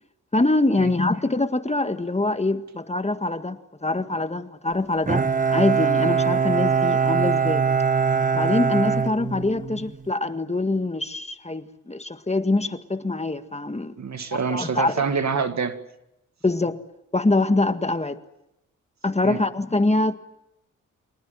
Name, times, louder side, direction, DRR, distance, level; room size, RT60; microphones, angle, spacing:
voice 1, 0.3-5.2 5.5-7.6 8.3-14.0 14.3-15.0 16.4-16.8 17.1-18.2 19.0-20.2, left 2 dB, 20° left, 1.8 m, -24 dB
Bowed string instrument, 5.1-9.9, right 6 dB, 25° right, 1.2 m, -22 dB
voice 2, 14.0-15.8 19.2-19.4, right 5 dB, 60° right, 2.2 m, -26 dB
26.0 x 19.0 x 9.1 m
cardioid pair, 55°, 31 cm